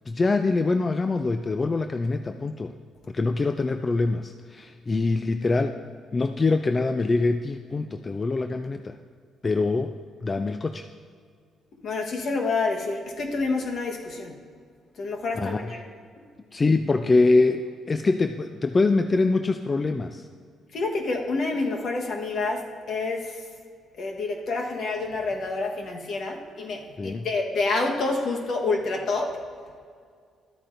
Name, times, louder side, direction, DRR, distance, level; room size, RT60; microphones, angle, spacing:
voice 1, 0.1-2.7 3.1-5.8 6.1-9.0 9.4-9.9 10.2-10.9 15.4-15.7 16.5-20.3 27.0-27.3, left 3 dB, 30° left, 8 dB, 0.3 m, -24 dB
voice 2, 11.8-14.3 15.0-15.8 20.7-22.6 22.9-23.3 24.0-29.3, left 3 dB, 60° left, 1 dB, 1.3 m, -28 dB
12.5 x 8.7 x 2.6 m, 2.1 s
cardioid pair, 90°, 0 cm